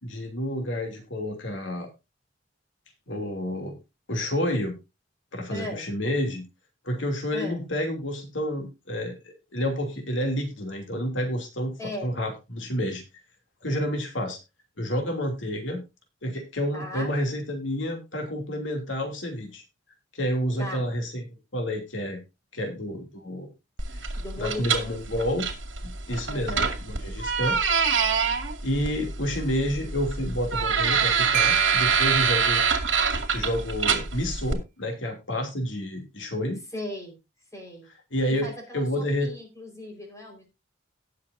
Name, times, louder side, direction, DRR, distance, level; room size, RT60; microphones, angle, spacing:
voice 1, 0.0-1.9 3.1-3.7 4.1-4.7 5.3-6.4 6.8-13.0 13.6-14.4 14.8-15.8 16.2-19.6 20.1-21.3 21.5-22.2 22.5-23.5 24.4-25.5 25.8-27.6 28.6-32.6 33.3-36.6 38.1-38.5 38.7-39.3, equal, 85° left, 3 dB, 2.9 m, -29 dB
voice 2, 5.5-5.9 7.3-7.7 11.8-12.1 16.7-17.1 20.6-20.9 24.1-24.9 25.1-25.4 26.3-26.7 36.7-37.2 37.5-37.9 38.3-40.5, left 1 dB, 15° left, 2 dB, 4.7 m, -37 dB
sound 1, 23.8-34.5, right 5 dB, 80° right, 2.2 m, -26 dB
Marimba xylophone, 31.3-33.1, right 12 dB, 45° right, 0.6 m, -30 dB
18.0 x 6.7 x 2.7 m, 0.25 s
head